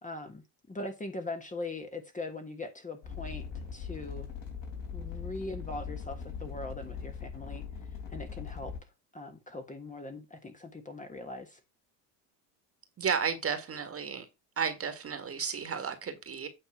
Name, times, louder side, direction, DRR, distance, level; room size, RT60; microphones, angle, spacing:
voice 1, 0.0-3.5 3.7-4.3 4.9-7.6 8.1-8.7 9.1-11.6, left 2 dB, 15° left, 1.4 m, -41 dB
sound 1, 3.0-8.8, left 6 dB, 50° left, 3.5 m, -40 dB
voice 2, 13.0-14.3 14.6-16.5, right 6 dB, 30° right, 1.7 m, -33 dB
9.0 x 3.6 x 5.7 m
supercardioid pair, 100°, 47 cm